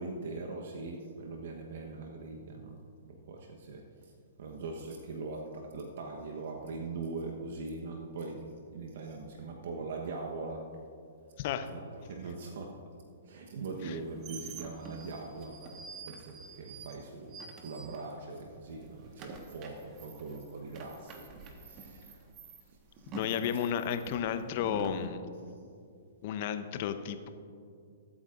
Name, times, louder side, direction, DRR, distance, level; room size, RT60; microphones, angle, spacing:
voice 1, 0.0-2.8 3.3-4.1 4.4-10.8 11.7-12.8 13.2-22.3 23.0-23.1, right 3 dB, 60° right, 2 dB, 1.1 m, -41 dB
voice 2, 11.4-11.7 13.9-14.0 23.1-25.2 26.2-27.3, left 9 dB, 50° left, 9 dB, 0.8 m, -32 dB
sound 1, 13.8-18.4 18.7-25.0, right 4 dB, 35° right, 1.5 m, -48 dB
22.0 x 8.7 x 2.6 m, 2.4 s
hypercardioid pair, 120°, 0 cm